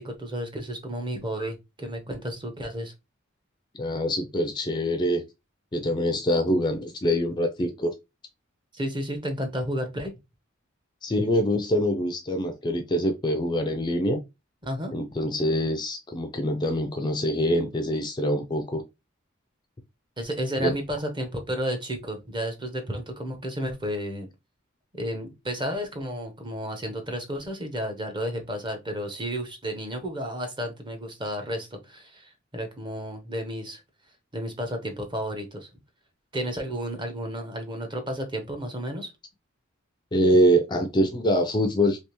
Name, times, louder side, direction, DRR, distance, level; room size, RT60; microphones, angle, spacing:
voice 1, 0.0-2.9 8.7-10.1 14.6-15.0 20.2-24.3 24.9-33.8 34.3-35.7 36.3-39.1, equal, 25° right, 0.7 m, -32 dB
voice 2, 3.8-5.2 5.7-7.9 11.0-14.2 14.9-18.8 20.6-20.7 40.1-42.0, equal, 20° left, 0.4 m, -24 dB
3.4 x 2.9 x 2.9 m
head